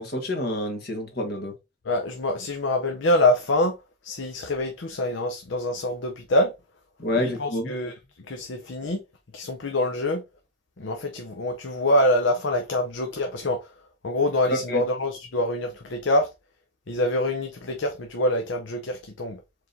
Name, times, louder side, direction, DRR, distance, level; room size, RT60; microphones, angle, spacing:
voice 1, 0.0-1.5 7.0-7.7 14.7-14.8, left 1 dB, 55° left, 1.5 m, -28 dB
voice 2, 1.8-3.8 4.0-6.5 7.2-7.9 8.3-9.0 9.3-10.2 10.8-13.7 14.0-16.3 16.9-19.4, left 1 dB, 75° left, 0.7 m, -25 dB
4.9 x 3.7 x 2.7 m
head